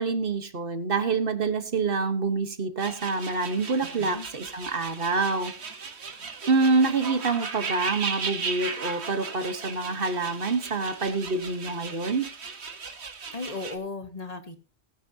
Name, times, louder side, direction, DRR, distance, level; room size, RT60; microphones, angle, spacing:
voice 1, 0.0-5.5 6.5-12.3, right 4 dB, 60° right, 9 dB, 1.5 m, -26 dB
sound 1, 2.8-13.8, right 5 dB, 90° right, 1.6 m, -36 dB
voice 2, 3.8-4.3 13.3-14.6, left 3 dB, 35° left, 9 dB, 1.3 m, -36 dB
19.5 x 10.0 x 2.8 m, 0.31 s
omnidirectional pair, 1.1 m